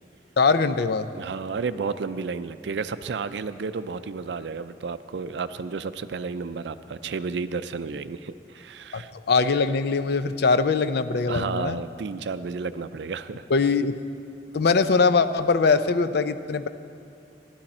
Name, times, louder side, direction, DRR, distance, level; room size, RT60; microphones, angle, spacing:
voice 1, 0.4-1.1 8.9-11.8 13.5-14.0 14.5-16.7, left 4 dB, 65° left, 11 dB, 0.5 m, -22 dB
voice 2, 1.1-9.1 11.3-13.4, right 4 dB, 75° right, 12 dB, 0.4 m, -32 dB
16.0 x 12.0 x 4.3 m, 2.5 s
head